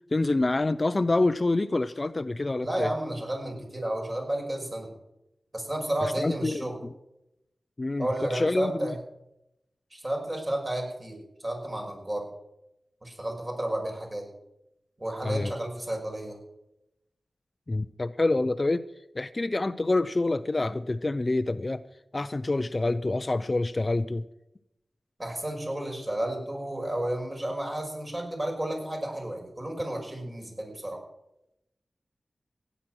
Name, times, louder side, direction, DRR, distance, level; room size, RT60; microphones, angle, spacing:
voice 1, 0.1-2.9 6.2-6.9 7.8-9.0 15.2-15.5 17.7-18.9 19.1-21.8 22.1-24.2, left 2 dB, 35° left, 13 dB, 0.6 m, -27 dB
voice 2, 2.6-4.9 5.5-6.8 8.0-8.9 9.9-12.3 13.0-14.3 15.0-16.4 25.2-31.0, right 1 dB, 30° right, 1 dB, 5.6 m, -32 dB
16.5 x 10.0 x 6.2 m, 0.85 s
wide cardioid pair, 70°, 0 cm